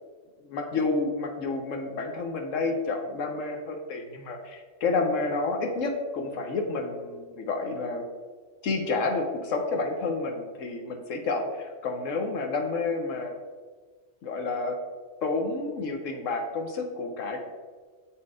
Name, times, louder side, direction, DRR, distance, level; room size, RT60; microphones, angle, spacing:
voice 1, 0.4-8.0 8.6-13.3 14.2-14.8 15.2-17.4, left 3 dB, 85° left, 3 dB, 1.2 m, -30 dB
7.5 x 4.4 x 4.8 m, 1.5 s
omnidirectional pair, 1.3 m